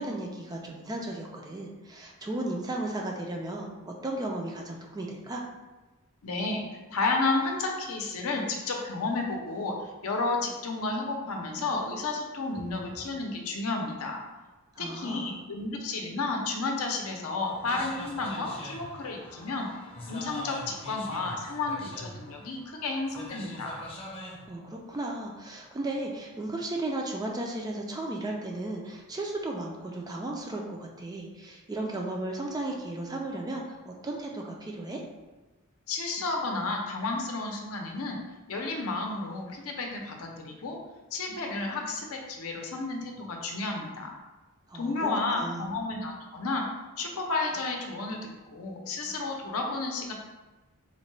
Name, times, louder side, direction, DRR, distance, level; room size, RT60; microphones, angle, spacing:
voice 1, 0.0-5.4 14.8-15.3 24.5-35.0 44.7-45.7, right 2 dB, 15° right, 0 dB, 0.3 m, -35 dB
voice 2, 6.2-6.6 6.9-14.2 14.8-19.7 20.1-23.8 35.9-38.2 38.5-40.8 41.1-44.1 44.7-46.7 47.0-48.2 48.5-50.1, left 3 dB, 70° left, 1 dB, 0.6 m, -32 dB
sound 1, 17.4-24.5, left 1 dB, 25° left, 0.6 m, -43 dB
3.8 x 2.2 x 3.1 m, 1.2 s
head